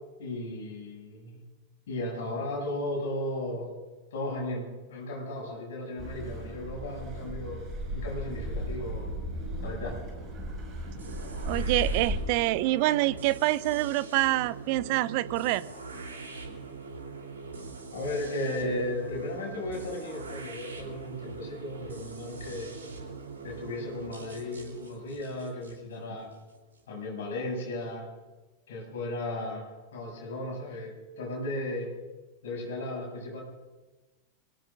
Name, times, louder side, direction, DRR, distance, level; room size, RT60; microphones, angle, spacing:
voice 1, 0.2-1.4 1.9-3.7 4.1-7.6 7.9-9.1 9.6-9.9 17.9-22.7 23.4-26.3 26.9-28.1 28.7-31.9 32.4-33.4, left 1 dB, 60° left, 0 dB, 6.8 m, -35 dB
Car passing by / Accelerating revving vroom, 6.0-12.2, equal, 30° right, 5.8 m, -35 dB
sound 1, 11.0-26.8, right 3 dB, 70° right, 3.3 m, -42 dB
voice 2, 11.5-15.6, right 17 dB, 45° right, 18 dB, 0.5 m, -26 dB
26.5 x 18.5 x 2.6 m, 1.2 s
figure-of-eight pair, 90°, 0 cm